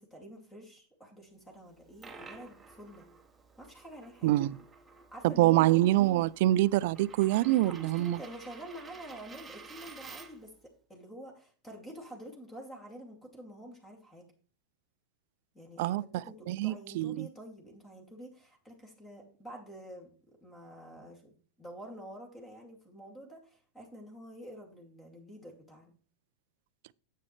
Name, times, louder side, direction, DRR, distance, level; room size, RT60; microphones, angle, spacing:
voice 1, 0.0-3.1 3.6-4.3 5.1-5.7 7.6-10.5 10.9-14.3 15.5-25.9, equal, 15° left, 2.6 m, -48 dB
Coin (dropping), 1.7-10.5, right 4 dB, 15° right, 1.2 m, -52 dB
voice 2, 4.2-4.6 5.2-8.2 15.8-17.3, right 16 dB, 65° right, 0.3 m, -26 dB
9.5 x 7.5 x 3.2 m
supercardioid pair, 125°, 0 cm